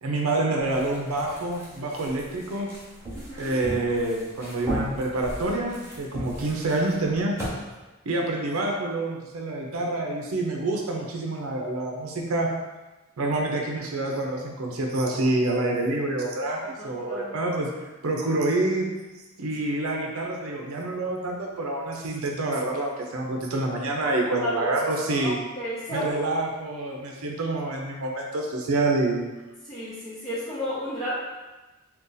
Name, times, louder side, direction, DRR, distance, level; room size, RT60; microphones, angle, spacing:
voice 1, 0.0-2.7 3.4-7.4 8.1-12.5 13.2-17.7 18.0-18.9 19.4-25.4 25.9-29.2, right 2 dB, 90° right, 0 dB, 0.5 m, -27 dB
sound 1, 0.6-7.5, right 1 dB, 15° right, 0.9 m, -37 dB
voice 2, 3.1-3.5 16.8-17.4 24.4-24.5 25.1-26.3 29.7-31.2, equal, 20° left, -9 dB, 0.5 m, -33 dB
2.6 x 2.3 x 3.8 m, 1.1 s
head